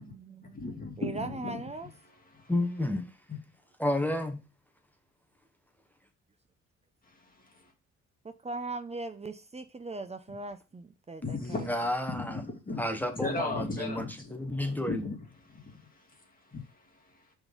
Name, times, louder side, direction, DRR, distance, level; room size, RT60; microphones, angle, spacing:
voice 1, 0.0-0.3 1.0-1.9 8.2-11.7, right 3 dB, 20° right, 0.6 m, -39 dB
voice 2, 0.6-1.6 2.1-2.5 3.3-3.4 7.1-7.7 11.2-11.7 12.1-12.9 13.2-17.3, left 3 dB, 30° left, 2.1 m, -38 dB
voice 3, 2.5-3.1 3.8-4.4 11.4-12.4 12.8-15.1, left 1 dB, 5° left, 1.0 m, -31 dB
5.8 x 3.8 x 5.2 m
cardioid pair, 90°, 30 cm